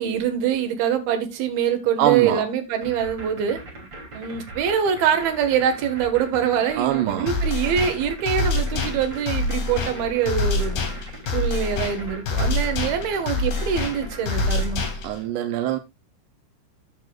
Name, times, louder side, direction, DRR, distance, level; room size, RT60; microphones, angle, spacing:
voice 1, 0.0-3.6 4.1-10.8 11.3-14.8, right 8 dB, 60° right, 2.9 m, -24 dB
voice 2, 2.0-2.4 6.8-7.3 15.0-15.8, right 11 dB, 85° right, 2.4 m, -23 dB
sound 1, 2.8-14.7, right 2 dB, 30° right, 2.8 m, -40 dB
sound 2, 7.3-15.3, left 3 dB, 50° left, 4.2 m, -26 dB
14.0 x 7.9 x 2.4 m
omnidirectional pair, 5.9 m